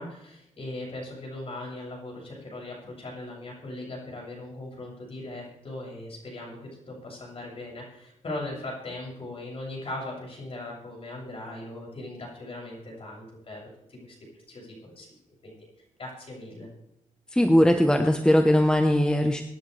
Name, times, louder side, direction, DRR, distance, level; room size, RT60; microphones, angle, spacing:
voice 1, 0.0-13.6 13.9-14.1 14.5-15.1 15.4-15.7 16.0-16.7, left 2 dB, 45° left, -3 dB, 7.4 m, -39 dB
voice 2, 17.3-19.4, equal, 5° left, 5 dB, 1.0 m, -20 dB
24.5 x 10.5 x 3.4 m, 0.81 s
wide cardioid pair, 125°, 14 cm